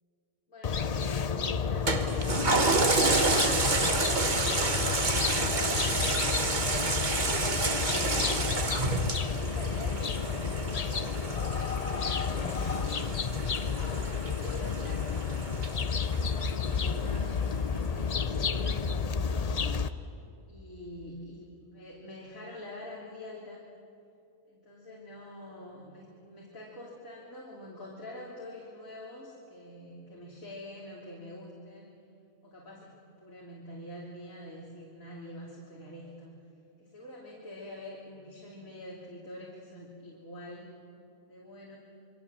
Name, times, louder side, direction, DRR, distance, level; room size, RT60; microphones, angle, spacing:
voice 1, 0.5-3.9 4.7-6.1 6.5-8.4 9.1-12.7 14.0-15.4 15.7-19.6 20.5-23.6 24.5-32.0 32.4-36.4 36.8-40.7 41.3-41.8, left 1 dB, 85° left, -4 dB, 3.4 m, -45 dB
sound 1, 0.6-19.9, left 6 dB, 40° left, 0.6 m, -31 dB
Toilet flush, 1.9-16.7 17.2-17.3, right 3 dB, 35° right, 1.5 m, -30 dB
28.0 x 23.0 x 7.4 m, 2.6 s
omnidirectional pair, 1.4 m